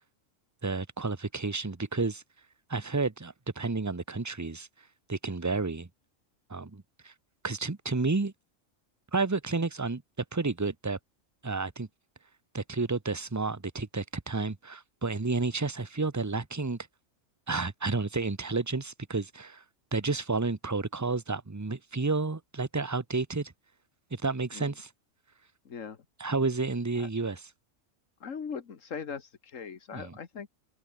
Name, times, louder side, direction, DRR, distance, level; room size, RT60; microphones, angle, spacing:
voice 1, 0.6-2.2 2.7-4.7 5.1-5.9 6.5-7.1 7.4-8.3 9.1-10.0 10.3-11.0 11.4-11.9 12.5-16.8 17.5-19.6 19.9-23.5 24.1-24.9 26.2-27.5 29.9-30.1, right 3 dB, 15° right, 0.9 m, -31 dB
voice 2, 25.7-26.0 27.0-27.1 28.2-30.5, left 6 dB, 80° left, 1.9 m, -40 dB
open air
omnidirectional pair, 1.3 m